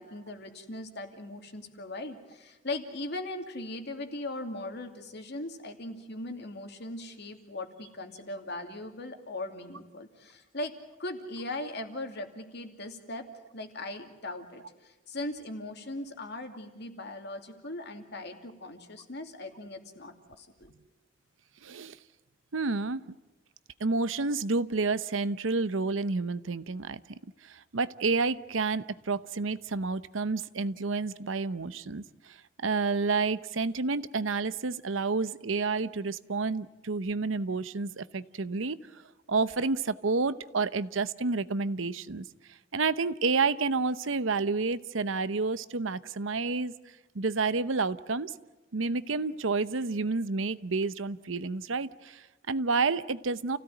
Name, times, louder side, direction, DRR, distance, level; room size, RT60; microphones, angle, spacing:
voice 1, 0.0-10.7 11.0-13.2 13.5-20.7, left 2 dB, 60° left, 5 dB, 2.6 m, -39 dB
voice 2, 21.6-22.0 22.5-23.0 23.8-27.0 27.4-32.4 32.6-38.8 39.3-42.3 42.7-46.7 47.1-48.3 48.7-53.6, right 4 dB, 85° right, 15 dB, 0.8 m, -29 dB
29.0 x 16.5 x 9.2 m, 1.1 s
head